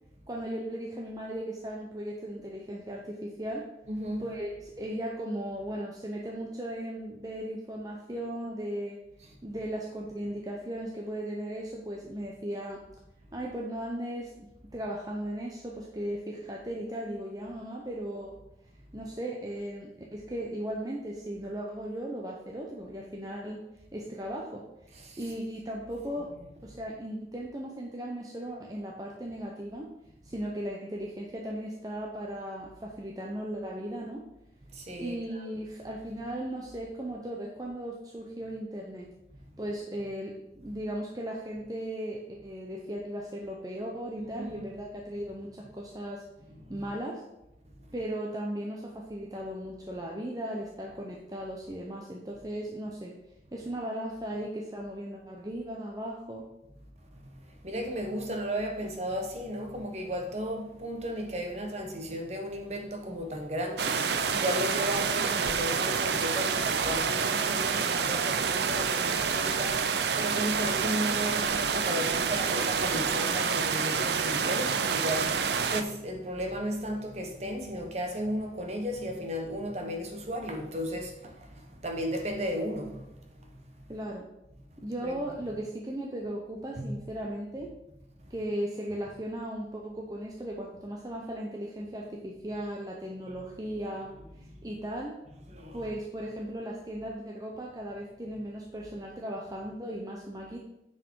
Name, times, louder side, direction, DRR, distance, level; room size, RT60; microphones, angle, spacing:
voice 1, 0.3-3.7 4.2-9.0 9.4-12.8 13.3-14.5 14.7-18.3 18.9-23.6 23.9-24.6 25.2-26.3 26.6-29.9 30.2-34.2 35.0-39.1 39.6-46.2 46.7-47.2 47.9-53.1 53.5-56.5 83.9-84.2 84.8-87.7 88.3-94.1 94.6-95.1 95.7-100.6, right 1 dB, 20° right, 0.8 m, -37 dB
voice 2, 3.9-4.3 24.9-25.2 34.7-35.4 44.2-44.7 46.6-46.7 57.2-83.9 85.0-85.2 86.8-86.9 94.5-94.6 95.5-95.8, equal, 40° right, 1.2 m, -35 dB
sound 1, 63.8-75.8, right 6 dB, 75° right, 0.6 m, -28 dB
9.3 x 4.8 x 4.7 m
head